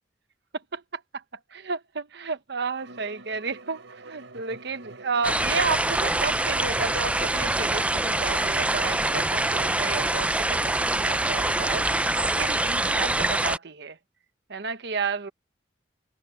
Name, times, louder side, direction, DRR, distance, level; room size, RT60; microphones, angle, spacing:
voice 1, 1.5-11.9 12.3-14.0 14.5-15.3, right 4 dB, 60° right, 1.0 m, -32 dB
Bowed string instrument, 2.8-10.2, right 3 dB, 90° right, 3.8 m, -45 dB
sound 1, 5.2-13.6, right 2 dB, 5° right, 0.4 m, -25 dB
head